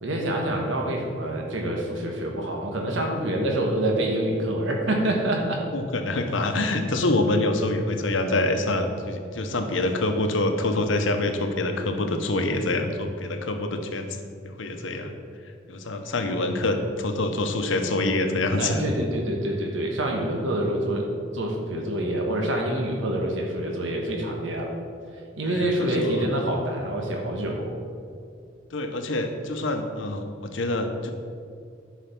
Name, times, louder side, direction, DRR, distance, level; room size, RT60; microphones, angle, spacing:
voice 1, 0.0-5.6 18.6-21.1 21.3-24.7 25.4-27.8, right 1 dB, 90° right, 0 dB, 1.3 m, -26 dB
voice 2, 5.7-14.1 14.4-15.1 15.7-18.8 25.4-26.3 28.7-31.1, left 2 dB, 90° left, 6 dB, 0.9 m, -26 dB
10.0 x 4.9 x 5.9 m, 2.4 s
head